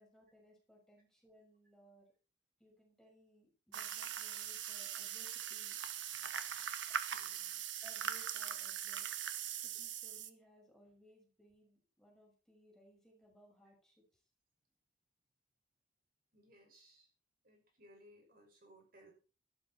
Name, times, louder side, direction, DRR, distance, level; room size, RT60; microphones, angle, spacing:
voice 1, 0.0-2.1 2.6-5.8 6.9-7.0 7.8-9.1 9.6-14.2, right 1 dB, 5° left, -1 dB, 6.2 m, -64 dB
sound 1, 3.7-10.3, right 9 dB, 85° right, 1.4 m, -41 dB
voice 2, 7.1-7.6 16.3-17.1 17.4-19.1, equal, 50° right, 1 dB, 6.0 m, -63 dB
13.5 x 13.0 x 4.4 m, 0.36 s
head